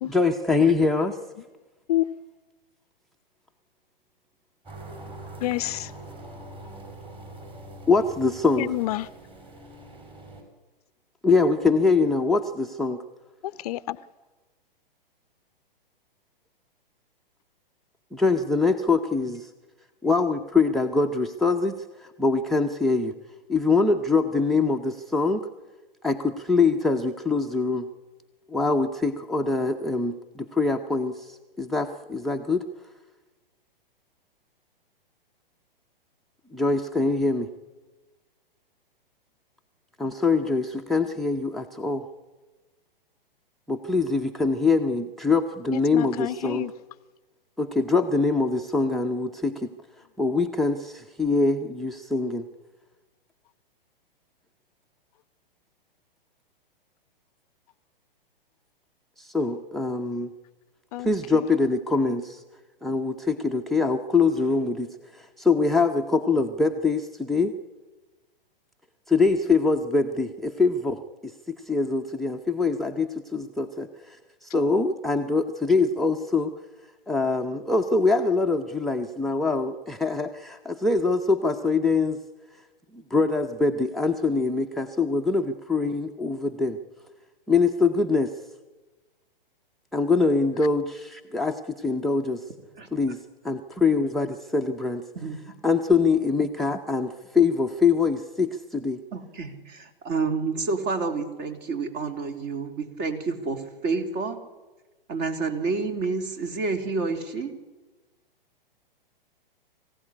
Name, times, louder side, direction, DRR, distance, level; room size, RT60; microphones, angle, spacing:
voice 1, 0.1-1.2 7.9-8.7 11.2-13.0 18.1-19.5 20.0-23.1 23.5-25.5 26.0-27.9 28.5-32.6 36.5-37.5 40.0-42.1 43.7-46.6 47.6-49.7 50.2-52.5 59.2-60.3 61.0-62.4 62.8-67.5 69.1-76.5 77.1-82.2 82.9-86.8 87.5-88.3 89.9-92.5 92.9-95.0 95.6-99.0, left 4 dB, ahead, 0.8 m, -24 dB
sound 1, 4.6-10.4, right 1 dB, 20° right, 5.6 m, -43 dB
voice 2, 5.4-5.9 8.6-9.1 13.4-14.0 45.7-46.7 60.9-61.4, left 15 dB, 40° left, 0.7 m, -29 dB
voice 3, 95.2-95.5 99.1-104.4 105.1-107.5, right 4 dB, 35° right, 3.4 m, -29 dB
23.0 x 16.0 x 9.9 m
hypercardioid pair, 120°, 29 cm